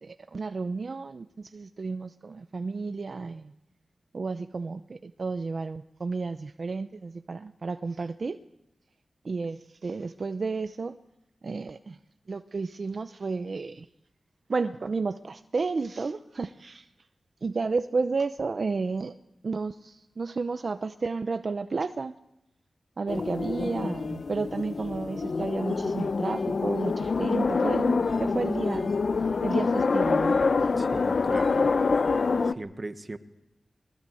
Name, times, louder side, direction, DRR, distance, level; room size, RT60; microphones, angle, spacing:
voice 1, 0.0-3.5 4.1-8.4 9.2-11.0 11.4-12.0 12.3-13.9 14.5-16.9 17.4-19.1 19.4-22.1 23.0-28.9 29.4-30.4, right 4 dB, 60° right, 10 dB, 0.7 m, -32 dB
sound 1, 23.1-32.5, left 4 dB, 65° left, 0.8 m, -26 dB
voice 2, 30.8-31.7 32.5-33.2, right 2 dB, 40° right, 10 dB, 1.5 m, -39 dB
21.0 x 20.0 x 7.8 m, 0.88 s
cardioid pair, 55°, 0 cm